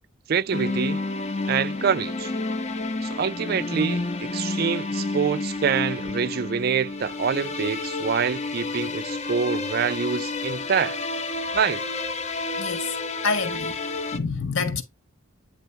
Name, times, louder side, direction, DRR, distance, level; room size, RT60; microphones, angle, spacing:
voice 1, 0.3-1.0 1.5-2.3 3.0-11.0 11.5-11.8, right 6 dB, 45° right, 0.4 m, -26 dB
sound 1, 0.5-14.2, left 3 dB, 35° left, 0.8 m, -30 dB
voice 2, 12.6-12.9 13.2-13.8 14.1-14.8, left 4 dB, 70° left, 1.5 m, -27 dB
9.3 x 3.2 x 4.3 m
head